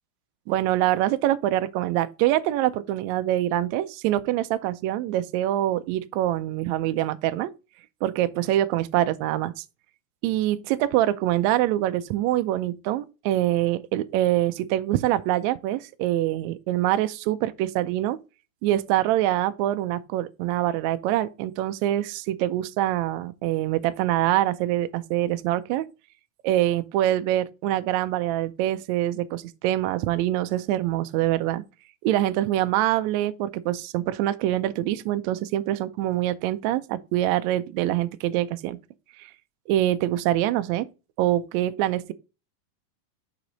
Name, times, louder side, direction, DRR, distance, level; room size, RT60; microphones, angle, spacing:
voice 1, 0.5-7.5 8.0-9.6 10.2-18.2 18.6-25.8 26.4-31.6 32.0-38.8 39.7-40.9 41.2-42.1, right 14 dB, 90° right, 1.6 m, -24 dB
6.0 x 4.9 x 3.9 m
omnidirectional pair, 3.8 m